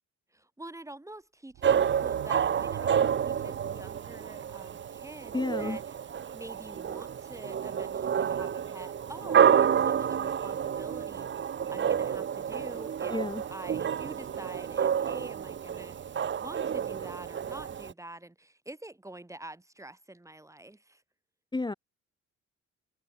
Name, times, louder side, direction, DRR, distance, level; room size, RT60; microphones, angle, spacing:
voice 1, 0.3-6.0 6.3-11.3 11.7-13.2 13.5-21.0, right 1 dB, 10° right, 1.7 m, -46 dB
sound 1, 1.5-6.3 6.6-6.7, right 14 dB, 70° right, 0.9 m, -45 dB
sound 2, 1.6-17.9, right 8 dB, 40° right, 0.8 m, -29 dB
voice 2, 5.3-5.8 13.1-13.4 21.5-21.7, left 3 dB, 15° left, 1.2 m, -31 dB
cardioid pair, 90°, 30 cm